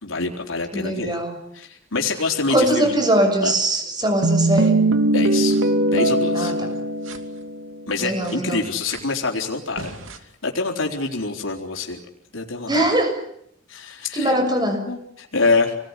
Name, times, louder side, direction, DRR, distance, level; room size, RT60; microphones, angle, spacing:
voice 1, 0.0-1.2 1.5-3.0 3.4-3.5 5.1-5.6 5.9-6.5 7.9-12.0 12.3-12.9 13.7-14.3 14.9-15.7, left 3 dB, 90° left, 1 dB, 4.0 m, -26 dB
voice 2, 0.7-1.3 2.5-4.8 6.3-6.5 8.0-8.6 12.7-13.2 14.1-14.9, right 1 dB, 20° right, 6 dB, 6.4 m, -21 dB
sound 1, 4.2-7.8 8.3-8.4 8.9-9.0 9.8-10.2, right 2 dB, 85° right, 2.8 m, -20 dB
28.5 x 20.0 x 9.8 m, 0.73 s
head